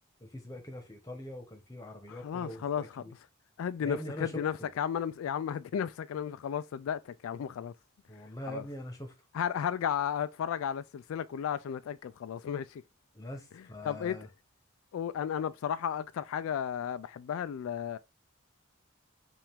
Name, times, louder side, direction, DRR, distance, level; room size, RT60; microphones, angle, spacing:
voice 1, 0.2-3.1 3.8-4.7 8.1-9.1 13.1-14.3, equal, 15° left, 1.0 m, -42 dB
voice 2, 2.1-3.0 3.6-7.7 8.5-8.6 9.3-12.8 13.8-14.2 14.9-18.0, left 8 dB, 80° left, 0.3 m, -34 dB
5.6 x 2.5 x 3.5 m
head